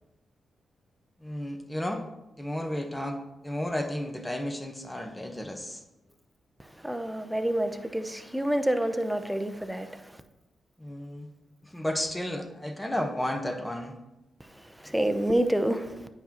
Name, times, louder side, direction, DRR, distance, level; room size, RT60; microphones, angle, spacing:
voice 1, 1.2-2.0 2.4-5.8 10.8-11.3 11.6-14.0, left 1 dB, 10° left, 1.2 m, -33 dB
voice 2, 6.6-10.2 14.4-16.1, right 1 dB, 5° right, 0.7 m, -28 dB
9.2 x 5.5 x 3.0 m
supercardioid pair, 50°, 0 cm